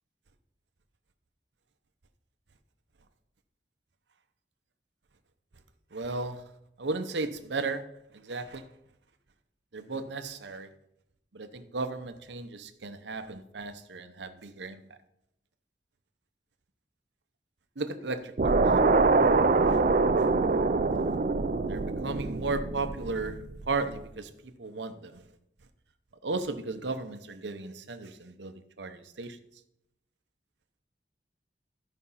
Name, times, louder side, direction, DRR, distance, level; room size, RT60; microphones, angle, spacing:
voice 1, 5.9-6.4 6.8-7.9 8.1-8.7 9.7-10.7 11.3-14.8 17.8-18.6 19.7-19.8 20.2-20.3 21.7-25.2 26.2-29.4, right 3 dB, 85° right, 0.9 m, -35 dB
sound 1, 18.4-23.7, right 3 dB, 50° right, 0.5 m, -24 dB
13.5 x 5.4 x 5.6 m
head